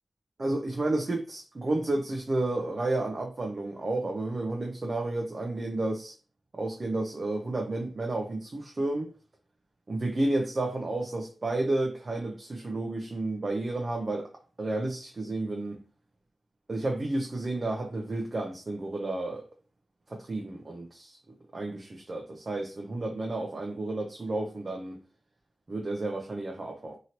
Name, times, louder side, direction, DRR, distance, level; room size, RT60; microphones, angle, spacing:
voice 1, 0.4-6.1 6.5-9.1 9.9-14.3 14.6-15.8 16.7-19.4 20.1-21.2 21.5-25.0 25.7-27.0, right 2 dB, 45° right, 0.5 m, -31 dB
2.9 x 2.7 x 2.8 m
cardioid pair, 65°, 0 cm